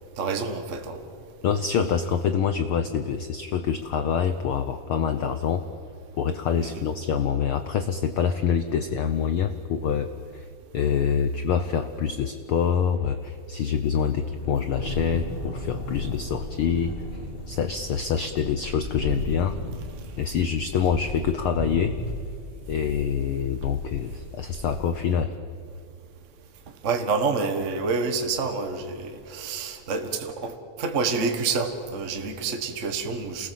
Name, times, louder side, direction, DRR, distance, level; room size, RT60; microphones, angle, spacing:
voice 1, 0.2-1.0 6.6-6.8 26.8-30.5 30.8-33.5, right 4 dB, 40° right, 6 dB, 1.0 m, -28 dB
voice 2, 1.4-5.6 6.2-10.1 10.3-10.5 10.7-16.9 17.5-19.6 20.2-22.0 22.7-25.3, left 7 dB, 85° left, 9 dB, 1.1 m, -26 dB
sound 1, 14.0-24.9, equal, 25° left, 1.6 m, -36 dB
28.5 x 19.5 x 7.6 m, 2.5 s
omnidirectional pair, 3.6 m